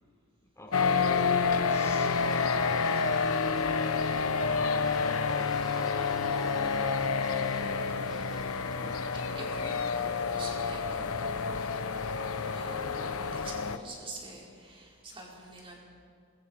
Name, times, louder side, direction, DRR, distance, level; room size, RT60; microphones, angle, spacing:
voice 1, 0.6-6.9 7.7-7.9 8.7-9.4 9.9-10.1, left 1 dB, 15° left, 0 dB, 3.8 m, -49 dB
sound 1, 0.7-13.8, left 5 dB, 75° left, 1.0 m, -29 dB
sound 2, 2.0-9.0, left 1 dB, ahead, 7.0 m, -53 dB
voice 2, 7.8-8.2 9.1-15.8, right 1 dB, 25° right, -3 dB, 4.9 m, -47 dB
27.5 x 22.5 x 4.9 m, 2.2 s
head